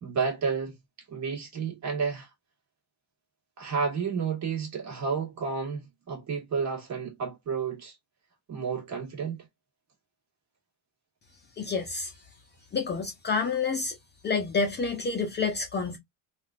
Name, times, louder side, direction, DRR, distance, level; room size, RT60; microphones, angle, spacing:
voice 1, 0.0-0.8 1.1-2.3 3.6-7.9 8.5-9.5, right 5 dB, 40° right, 1.7 m, -31 dB
voice 2, 11.6-12.1 12.7-14.0 14.2-16.0, left 4 dB, 25° left, 0.6 m, -28 dB
3.6 x 2.4 x 2.5 m
cardioid pair, 130°, 45 cm